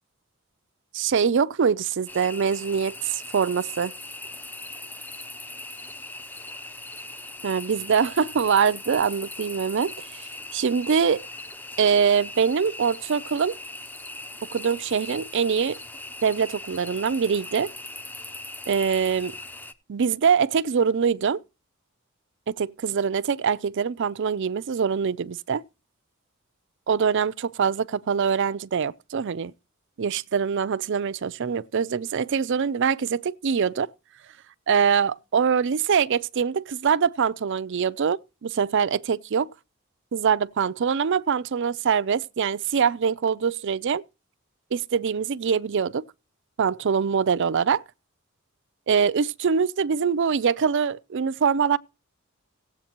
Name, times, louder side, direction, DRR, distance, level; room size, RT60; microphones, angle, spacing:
voice 1, 0.9-3.9 7.4-11.3 11.8-13.6 14.5-15.8 16.2-17.7 18.7-19.3 19.9-21.4 22.5-25.6 26.9-29.5 30.0-33.9 34.7-39.5 40.1-44.0 44.7-46.0 46.6-47.8 48.9-51.8, right 6 dB, 60° right, 0.5 m, -24 dB
sound 1, 2.1-19.7, left 2 dB, 10° left, 0.7 m, -40 dB
17.0 x 8.0 x 3.0 m
head